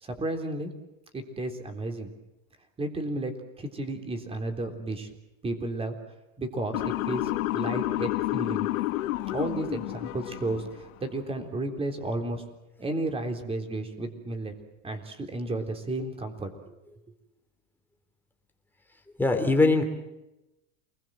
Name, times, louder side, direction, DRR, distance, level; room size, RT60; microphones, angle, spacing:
voice 1, 0.0-0.7 1.1-2.1 2.8-5.1 5.4-6.0 6.4-8.7 9.3-12.4 12.8-14.5 14.8-16.8, right 2 dB, 15° right, 5 dB, 3.7 m, -33 dB
Motor vehicle (road) / Siren, 6.7-10.9, left 17 dB, 80° left, 1.8 m, -30 dB
voice 2, 19.2-19.8, left 3 dB, 5° left, 3 dB, 3.3 m, -21 dB
29.5 x 20.0 x 7.6 m, 0.94 s
supercardioid pair, 150°, 41 cm